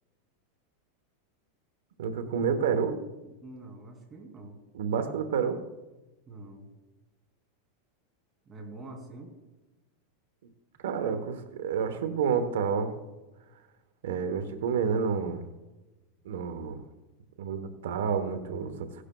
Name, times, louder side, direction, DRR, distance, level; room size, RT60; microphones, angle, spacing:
voice 1, 2.0-3.0 4.7-5.6 10.8-12.9 14.0-15.4 16.2-16.8 17.4-19.0, right 6 dB, 90° right, 8 dB, 1.0 m, -29 dB
voice 2, 3.2-4.6 6.3-6.7 8.5-9.3, right 2 dB, 20° right, 1 dB, 2.7 m, -45 dB
17.0 x 11.5 x 2.3 m, 1.1 s
supercardioid pair, 155°, 0 cm